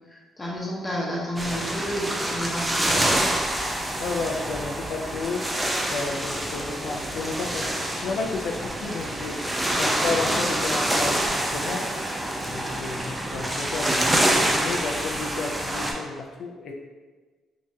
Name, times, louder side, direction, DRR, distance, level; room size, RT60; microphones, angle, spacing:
voice 1, 0.4-3.2 10.0-10.2, equal, 20° left, -4 dB, 0.9 m, -31 dB
sound 1, 1.4-15.9, right 1 dB, 10° right, 0.5 m, -26 dB
voice 2, 4.0-5.6 5.9-9.5 9.7-11.9 12.4-16.7, left 3 dB, 65° left, 1 dB, 0.4 m, -32 dB
3.4 x 2.8 x 2.7 m, 1.4 s
cardioid pair, 90°, 0 cm